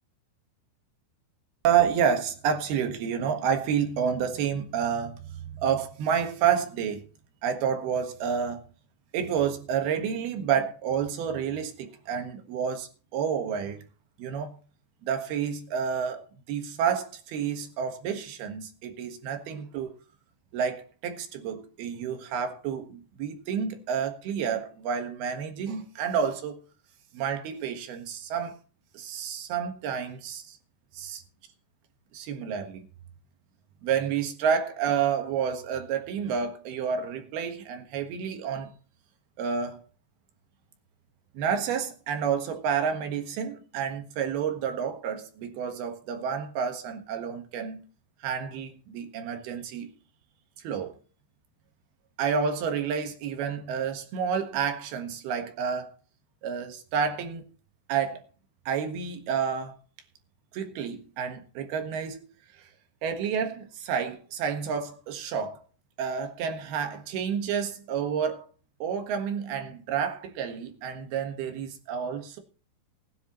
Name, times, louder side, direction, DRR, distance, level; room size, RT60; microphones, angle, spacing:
voice 1, 1.6-7.0 7.4-8.6 9.1-13.8 14.2-14.6 15.0-20.0 20.5-26.6 27.1-28.6 28.9-30.6 30.9-31.2 32.1-32.8 33.8-38.7 39.4-39.8 41.3-47.8 48.2-49.9 50.6-50.9 52.2-55.9 56.4-57.4 57.9-58.2 58.7-59.8 60.5-62.2 62.5-62.7 63.0-65.6 66.0-68.5 68.8-72.4, right 7 dB, 65° right, 3.2 m, -29 dB
20.0 x 10.0 x 3.1 m
omnidirectional pair, 5.2 m